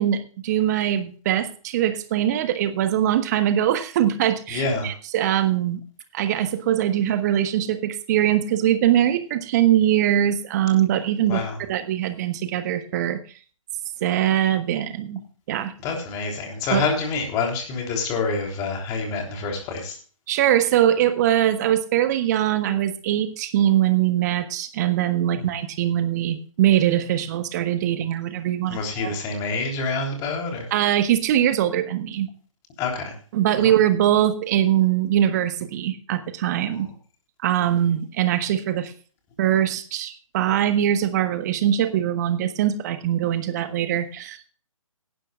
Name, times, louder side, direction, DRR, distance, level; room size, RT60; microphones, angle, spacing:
voice 1, 0.0-5.8 6.1-11.4 11.7-13.2 14.0-15.2 15.5-15.7 16.7-16.8 20.3-29.1 30.7-32.3 33.3-36.9 37.4-38.9 39.4-44.5, right 11 dB, 30° right, 10 dB, 1.4 m, -22 dB
voice 2, 4.5-4.9 11.3-11.6 15.8-20.0 25.3-25.5 28.7-30.7 32.8-33.2 36.7-36.9, left 4 dB, 20° left, 2 dB, 3.6 m, -27 dB
18.0 x 11.5 x 2.5 m, 0.40 s
figure-of-eight pair, 140°, 17 cm